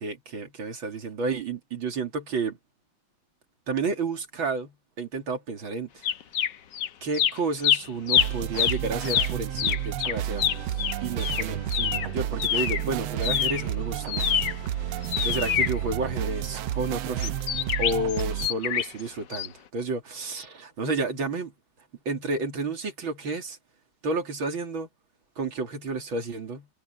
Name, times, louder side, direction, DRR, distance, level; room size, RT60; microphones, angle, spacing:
voice 1, 0.0-2.6 3.7-6.0 7.0-14.4 14.7-17.4 17.8-21.5 22.1-23.6 24.0-24.9 25.4-26.7, right 3 dB, 70° right, 3.5 m, -31 dB
sound 1, 6.0-6.9 7.1-12.9 13.2-16.5 17.2-19.0 19.3-19.5, left 10 dB, 65° left, 1.5 m, -26 dB
sound 2, 8.1-18.5, right 12 dB, 85° right, 1.5 m, -31 dB
omnidirectional pair, 2.3 m